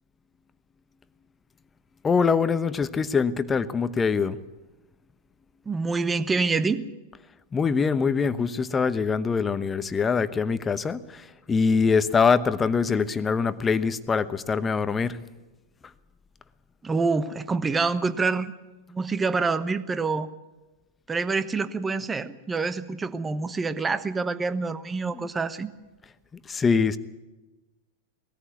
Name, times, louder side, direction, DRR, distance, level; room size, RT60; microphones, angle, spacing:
voice 1, 2.0-4.4 7.5-15.2 25.1-25.2 26.5-27.0, left 5 dB, 20° left, 14 dB, 1.0 m, -24 dB
voice 2, 5.6-6.9 16.8-18.5 18.9-20.3 21.1-25.7, right 4 dB, 15° right, 13 dB, 1.1 m, -26 dB
20.0 x 14.5 x 9.3 m, 1.1 s
figure-of-eight pair, 95°, 0 cm